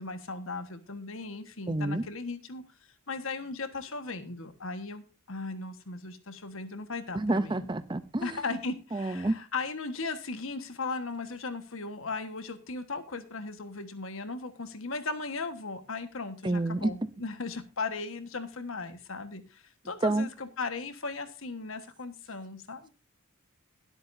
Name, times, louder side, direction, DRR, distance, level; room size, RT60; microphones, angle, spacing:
voice 1, 0.0-2.6 3.1-7.7 8.2-22.9, left 3 dB, 70° left, 1.4 m, -37 dB
voice 2, 1.7-2.0 7.1-8.4 8.9-9.4 16.4-16.9 20.0-20.3, right 2 dB, 20° right, 0.5 m, -28 dB
21.5 x 8.1 x 2.7 m
head